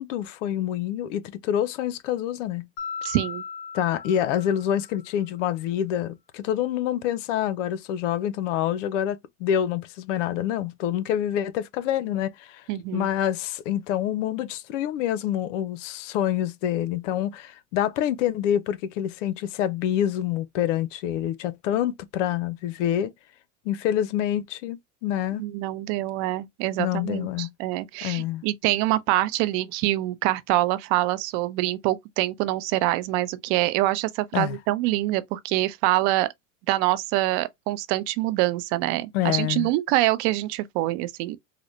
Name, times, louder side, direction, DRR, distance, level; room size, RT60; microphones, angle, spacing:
voice 1, 0.0-2.7 3.7-12.6 12.9-23.1 23.6-25.4 26.8-27.5 28.0-28.4 34.3-34.6 39.1-39.7, left 11 dB, 75° left, 0.6 m, -27 dB
Mallet percussion, 2.8-5.1, left 6 dB, 50° left, 1.0 m, -37 dB
voice 2, 3.0-3.4 12.7-13.1 25.4-36.3 36.7-41.4, right 16 dB, 55° right, 0.6 m, -25 dB
3.9 x 2.0 x 3.1 m
supercardioid pair, 110°, 37 cm